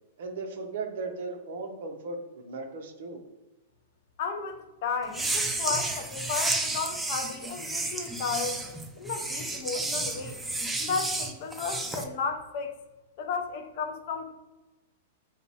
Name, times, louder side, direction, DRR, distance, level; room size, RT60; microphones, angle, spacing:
voice 1, 0.2-3.2, right 3 dB, 70° right, 4 dB, 0.5 m, -37 dB
voice 2, 4.2-8.6 9.0-10.4 10.8-12.8 13.2-14.3, left 5 dB, 55° left, 6 dB, 0.4 m, -33 dB
sound 1, 5.1-12.0, right 2 dB, 5° right, 0.3 m, -31 dB
2.6 x 2.0 x 2.7 m, 1.1 s
hypercardioid pair, 115°, 0 cm